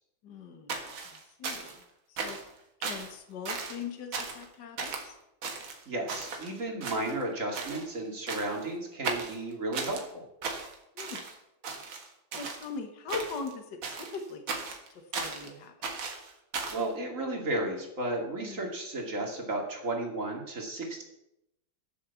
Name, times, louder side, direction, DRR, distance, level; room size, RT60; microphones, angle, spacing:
voice 1, 0.2-0.8 1.1-1.8 2.1-2.4 2.8-5.2 11.0-11.2 12.3-15.9 18.4-18.7, left 5 dB, 60° left, 5 dB, 2.0 m, -41 dB
sound 1, 0.7-1.8 2.2-2.5 2.8-3.1 3.5-3.8 4.1-4.5 4.8-5.1 5.4-6.5 6.8-7.3 7.5-7.9 8.3-8.7 9.0-10.0 10.4-11.3 11.6-12.7 13.1-13.5 13.8-15.5 15.8-16.9, right 4 dB, 75° right, 2.5 m, -36 dB
voice 2, 5.9-10.3 16.7-21.0, right 2 dB, 40° right, 1 dB, 2.9 m, -33 dB
14.5 x 7.3 x 7.1 m, 0.84 s
omnidirectional pair, 2.2 m